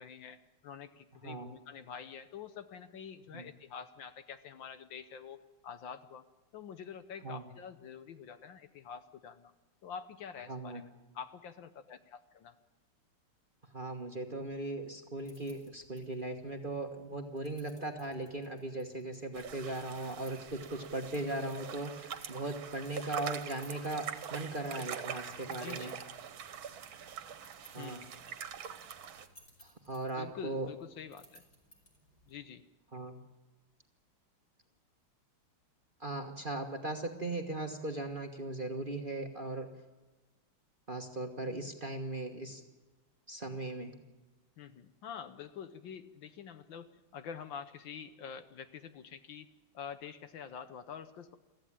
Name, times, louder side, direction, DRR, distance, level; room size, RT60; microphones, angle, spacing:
voice 1, 0.0-6.2 6.5-9.5 9.8-12.6 25.4-26.0 27.8-28.1 30.1-31.4 32.3-32.6 44.6-49.5 49.7-51.4, left 7 dB, 65° left, 11 dB, 1.5 m, -47 dB
voice 2, 1.2-1.5 3.3-3.4 7.2-7.4 10.5-10.8 13.7-25.9 27.7-28.0 29.6-30.7 32.9-33.2 36.0-39.7 40.9-42.6 43.3-43.9, right 2 dB, 30° right, 4 dB, 1.2 m, -38 dB
sound 1, 15.2-32.4, right 2 dB, 30° left, 4.9 m, -63 dB
sound 2, 19.3-29.3, right 8 dB, 70° right, 1.9 m, -44 dB
23.5 x 15.0 x 8.8 m, 1.2 s
omnidirectional pair, 2.4 m